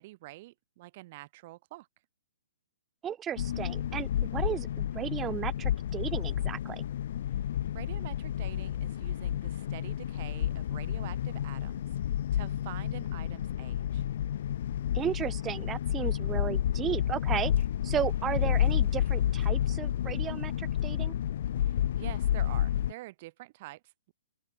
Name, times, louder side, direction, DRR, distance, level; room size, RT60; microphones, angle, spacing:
voice 1, 0.0-1.9 7.3-7.5 7.7-14.0 21.6-24.1, right 19 dB, 35° right, 6.6 m, -47 dB
voice 2, 3.0-6.8 14.9-17.5 17.8-21.1, right 9 dB, 15° right, 1.8 m, -34 dB
sound 1, 3.4-22.9, left 11 dB, 50° left, 0.6 m, -30 dB
open air
figure-of-eight pair, 120°, 0 cm